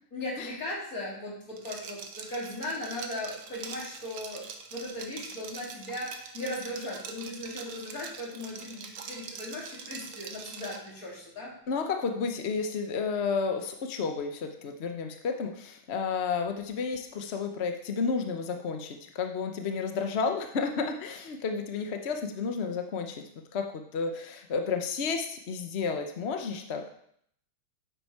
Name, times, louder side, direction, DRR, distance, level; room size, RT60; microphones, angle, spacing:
voice 1, 0.1-11.5, left 1 dB, 40° left, -4 dB, 3.5 m, -38 dB
Liquid, 1.6-10.9, right 6 dB, 65° right, 1.5 m, -44 dB
voice 2, 11.7-23.2 23.5-23.6 23.9-26.8, left 5 dB, 55° left, 5 dB, 0.7 m, -31 dB
9.8 x 8.0 x 4.7 m, 0.68 s
omnidirectional pair, 2.3 m